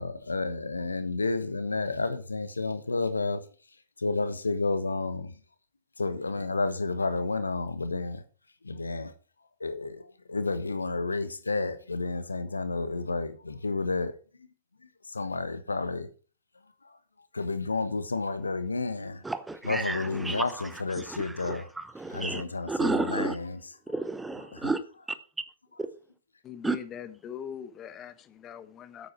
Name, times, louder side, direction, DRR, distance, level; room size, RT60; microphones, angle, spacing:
voice 1, 0.0-3.5 4.0-5.3 6.0-8.2 8.6-9.1 9.6-14.2 15.1-16.1 17.3-19.2 19.6-21.7 22.1-23.6 24.5-24.7, left 3 dB, 75° left, 1.2 m, -31 dB
voice 2, 19.2-20.7 21.0-23.4 23.9-24.8 25.1-25.2 25.8-25.9 26.6-26.8, right 3 dB, 5° right, 0.9 m, -32 dB
voice 3, 26.4-29.1, left 9 dB, 25° left, 1.1 m, -41 dB
9.4 x 8.7 x 4.5 m
figure-of-eight pair, 105°, 0 cm